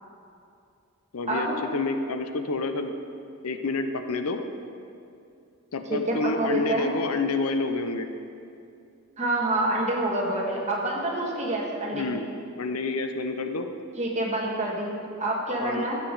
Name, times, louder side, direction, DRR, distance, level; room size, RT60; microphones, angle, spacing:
voice 1, 1.1-2.9 3.4-4.4 5.7-8.1 11.9-12.3 12.6-13.7 15.6-15.9, left 3 dB, 80° left, 7 dB, 0.7 m, -28 dB
voice 2, 5.9-6.9 9.2-12.2 14.0-16.0, right 1 dB, 30° right, -2 dB, 1.7 m, -27 dB
14.0 x 8.3 x 4.0 m, 2.6 s
head